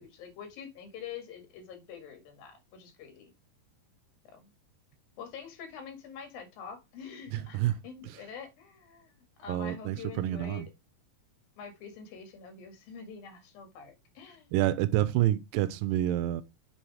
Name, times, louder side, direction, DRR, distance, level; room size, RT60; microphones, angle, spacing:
voice 1, 0.0-3.3 4.3-4.5 5.2-9.1 9.4-10.7 11.6-14.5, left 6 dB, 85° left, 3.6 m, -46 dB
voice 2, 7.3-7.8 8.0-8.2 9.5-10.7 14.5-16.4, right 14 dB, 85° right, 2.3 m, -28 dB
7.8 x 3.7 x 4.8 m
omnidirectional pair, 4.0 m